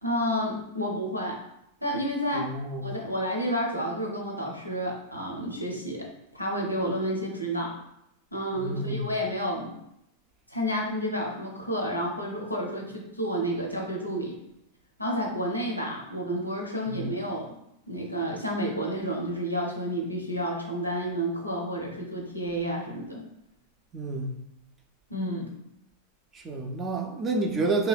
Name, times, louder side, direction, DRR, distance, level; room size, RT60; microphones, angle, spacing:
voice 1, 0.0-1.4 1.8-2.5 2.8-6.1 6.3-7.8 8.3-9.7 10.5-14.3 15.0-17.6 17.9-23.2 25.1-25.5, equal, 90° left, 0.6 m, -30 dB
voice 2, 2.3-2.9 8.6-9.1 16.9-17.1 23.9-24.3 26.3-27.9, right 2 dB, 25° right, 0.4 m, -29 dB
2.8 x 2.2 x 3.3 m
figure-of-eight pair, 90°, 0 cm